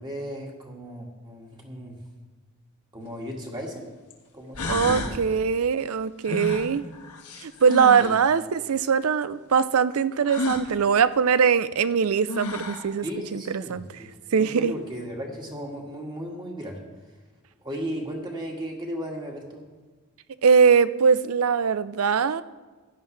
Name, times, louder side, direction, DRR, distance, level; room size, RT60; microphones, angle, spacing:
voice 1, 0.0-2.0 2.9-3.9 4.3-5.2 8.0-8.1 13.0-14.1 14.4-16.8 17.6-19.6, equal, 20° right, -1 dB, 1.9 m, -35 dB
sound 1, 3.1-3.2 4.1-4.2 4.5-5.2 6.2-8.2 10.2-10.7 11.9-12.0 12.3-12.9, left 2 dB, 90° left, 1.5 m, -31 dB
voice 2, 4.7-6.8 7.4-13.0 13.3-13.9 14.3-14.7 20.4-22.4, right 6 dB, 70° right, 15 dB, 0.5 m, -21 dB
16.0 x 11.0 x 3.3 m, 1.4 s
head